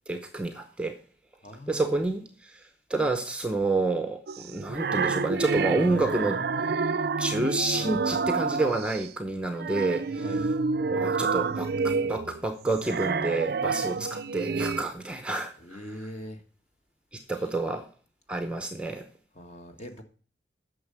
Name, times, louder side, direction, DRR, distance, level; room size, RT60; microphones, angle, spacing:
voice 1, 0.1-1.0 1.7-6.4 7.2-10.3 10.9-15.8 17.1-17.9 18.3-19.1, right 2 dB, 5° right, 0.7 m, -29 dB
voice 2, 1.4-2.0 10.2-10.4 15.6-16.4 17.3-17.5 19.3-20.0, equal, 35° left, 1.5 m, -42 dB
sound 1, 4.3-9.1 9.5-14.8, right 4 dB, 55° right, 0.4 m, -29 dB
9.4 x 6.5 x 6.7 m
head